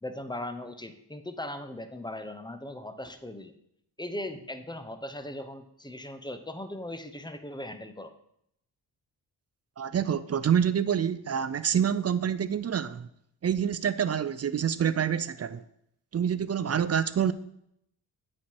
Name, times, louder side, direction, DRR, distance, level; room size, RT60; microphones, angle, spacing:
voice 1, 0.0-3.5 4.0-8.1, left 1 dB, 10° left, 0.8 m, -39 dB
voice 2, 9.8-13.1 13.4-15.6 16.1-17.3, right 8 dB, 35° right, 0.4 m, -27 dB
8.6 x 4.5 x 4.6 m
cardioid pair, 65°, 45 cm